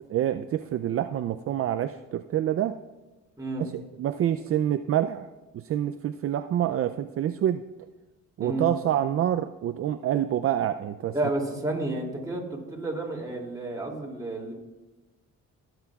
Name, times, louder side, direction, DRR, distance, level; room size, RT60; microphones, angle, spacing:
voice 1, 0.1-2.8 3.6-7.6 8.4-11.1, right 11 dB, 50° right, 9 dB, 0.4 m, -27 dB
voice 2, 11.1-14.5, right 2 dB, 10° right, -1 dB, 2.7 m, -31 dB
16.5 x 7.8 x 2.4 m, 1.2 s
cardioid pair, 90°, 30 cm